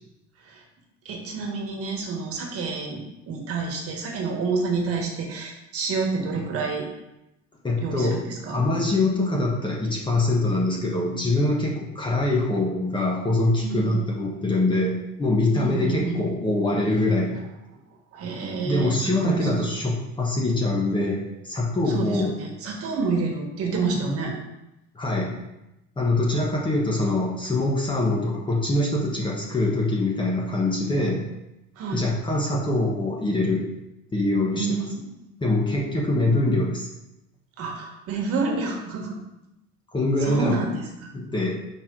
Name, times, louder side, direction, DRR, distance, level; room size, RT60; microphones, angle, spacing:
voice 1, 1.0-6.9 7.8-8.7 13.6-14.1 15.5-16.3 17.7-17.8 18.1-19.7 21.9-24.4 31.7-32.1 34.6-35.1 37.6-39.2 40.2-41.1, right 4 dB, 50° right, 0 dB, 1.5 m, -29 dB
voice 2, 7.6-8.2 8.5-17.4 18.6-22.3 24.0-24.2 24.9-25.4 26.0-31.3 31.9-33.7 34.1-34.8 35.4-36.9 39.9-40.6 41.1-41.5, left 2 dB, 15° left, -2 dB, 1.2 m, -24 dB
6.8 x 4.6 x 3.8 m, 0.92 s
cardioid pair, 140°, 30 cm